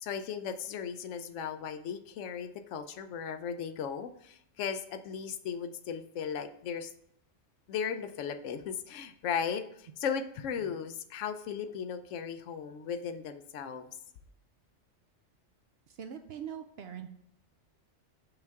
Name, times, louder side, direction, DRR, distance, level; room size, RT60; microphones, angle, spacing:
voice 1, 0.0-6.9 7.7-13.9, left 7 dB, 90° left, 9 dB, 1.0 m, -36 dB
voice 2, 15.9-17.1, right 8 dB, 65° right, 7 dB, 0.7 m, -43 dB
5.4 x 3.5 x 5.7 m, 0.70 s
omnidirectional pair, 1.2 m